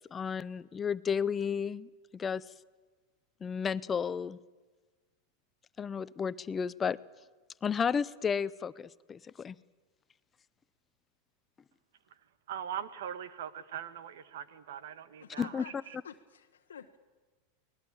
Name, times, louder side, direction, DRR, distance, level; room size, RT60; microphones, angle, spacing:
voice 1, 0.0-2.5 3.4-4.4 5.8-7.0 7.6-9.6 15.4-15.6, left 6 dB, 25° left, 18 dB, 0.7 m, -33 dB
voice 2, 12.5-16.0, right 9 dB, 70° right, 14 dB, 1.6 m, -41 dB
voice 3, 15.2-15.7 16.0-17.0, left 8 dB, 85° left, 3 dB, 1.2 m, -49 dB
24.0 x 19.5 x 8.8 m, 1.3 s
hypercardioid pair, 100°, 0 cm